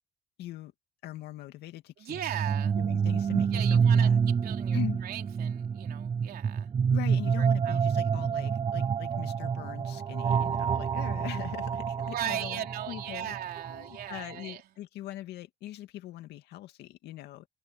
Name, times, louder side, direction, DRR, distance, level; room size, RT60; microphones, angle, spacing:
voice 1, 0.4-0.7 1.0-2.2 2.8-4.2 4.7-5.0 6.9-13.4 13.7-17.5, left 14 dB, 80° left, 2.3 m, -41 dB
voice 2, 2.0-2.8 3.5-6.7 7.4-7.8 12.0-14.6, right 11 dB, 65° right, 3.4 m, -38 dB
sound 1, 2.1-14.0, right 6 dB, 30° right, 0.7 m, -28 dB
cardioid pair, 110°, 17 cm